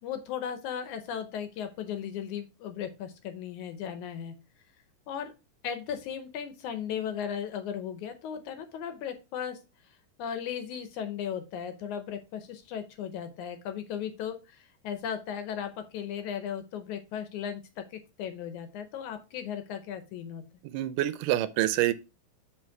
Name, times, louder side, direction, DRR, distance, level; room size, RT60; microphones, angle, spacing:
voice 1, 0.0-4.3 5.1-5.3 5.6-9.6 10.2-20.4, left 8 dB, 75° left, 2.0 m, -36 dB
voice 2, 20.7-21.9, right 14 dB, 85° right, 2.2 m, -26 dB
6.2 x 4.2 x 4.5 m
omnidirectional pair, 3.8 m